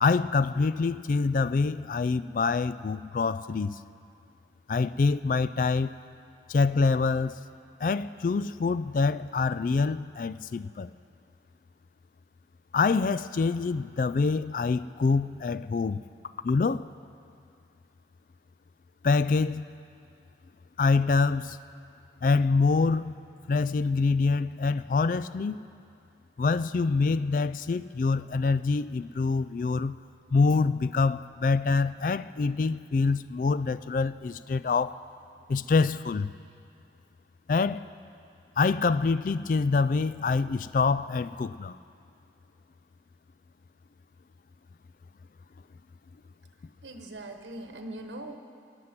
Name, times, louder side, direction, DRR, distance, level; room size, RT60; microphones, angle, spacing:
voice 1, 0.0-3.8 4.7-5.9 6.5-7.4 7.8-10.9 12.7-16.0 16.4-16.9 19.0-19.7 20.8-21.6 22.2-23.2 23.5-25.6 26.4-30.0 30.3-34.9 35.5-36.3 37.5-37.9 38.6-41.8, left 4 dB, 45° left, 15 dB, 0.3 m, -25 dB
voice 2, 46.8-48.4, right 1 dB, 90° right, 5 dB, 1.1 m, -41 dB
17.0 x 11.0 x 6.0 m, 2.5 s
head